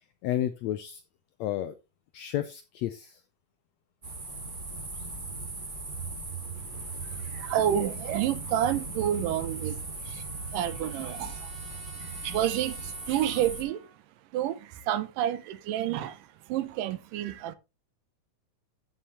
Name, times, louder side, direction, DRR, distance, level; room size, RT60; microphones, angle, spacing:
voice 1, 0.2-1.0 1.4-1.7 2.1-3.1, left 12 dB, 80° left, 1.6 m, -31 dB
sound 1, 4.0-13.6, right 3 dB, 20° right, 1.7 m, -38 dB
voice 2, 6.7-11.5 12.0-13.9 14.3-17.6, right 11 dB, 90° right, 2.4 m, -30 dB
Trumpet, 9.3-14.0, right 4 dB, 45° right, 5.4 m, -54 dB
14.0 x 5.8 x 3.2 m
omnidirectional pair, 3.7 m